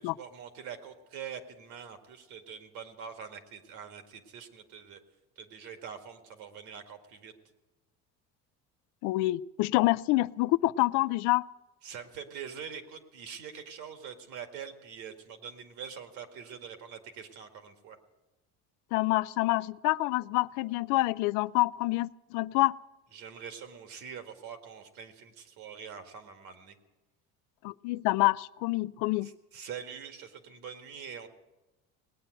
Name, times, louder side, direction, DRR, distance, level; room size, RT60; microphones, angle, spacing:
voice 1, 0.0-5.0 5.4-7.3 11.8-18.0 23.1-26.8 29.2-31.3, right 7 dB, 70° right, 6 dB, 1.9 m, -44 dB
voice 2, 9.0-11.5 18.9-22.8 27.6-29.3, left 19 dB, 80° left, 19 dB, 0.5 m, -27 dB
19.0 x 9.1 x 7.8 m, 1.1 s
cardioid pair, 135°, 31 cm